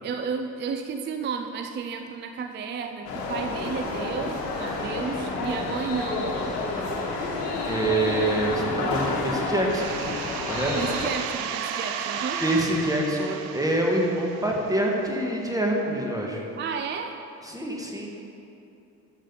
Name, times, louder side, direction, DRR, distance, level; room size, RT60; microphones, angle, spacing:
voice 1, 0.0-6.4 10.8-12.4 16.6-17.2, right 6 dB, 25° right, 6 dB, 0.4 m, -32 dB
sound 1, 3.1-11.1, left 3 dB, 75° left, 1.2 m, -29 dB
voice 2, 7.7-9.8 10.5-10.7 12.4-16.4 17.4-18.1, right 1 dB, 5° right, -1 dB, 1.6 m, -26 dB
sound 2, 9.7-15.2, right 7 dB, 70° right, 0.6 m, -34 dB
12.5 x 5.9 x 3.9 m, 2.8 s
figure-of-eight pair, 45°, 48 cm